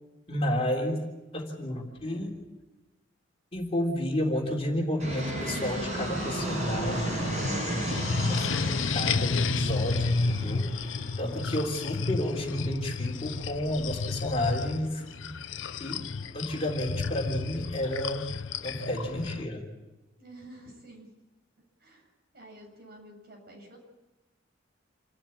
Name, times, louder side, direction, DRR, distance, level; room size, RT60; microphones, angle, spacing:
voice 1, 0.3-2.3 3.5-8.0 8.3-10.7 11.2-15.3 15.8-16.1 16.3-18.3 18.6-19.7, left 1 dB, 30° left, 0 dB, 3.5 m, -31 dB
Fixed-wing aircraft airplane, 5.0-14.0, right 1 dB, 35° right, 7.1 m, -35 dB
sound 1, 5.7-19.5, left 4 dB, 90° left, 0.7 m, -32 dB
voice 2, 11.6-12.0 20.2-21.1 21.8-22.1 22.3-23.8, right 1 dB, 55° right, 0 dB, 7.6 m, -50 dB
28.0 x 13.0 x 8.8 m, 1.1 s
head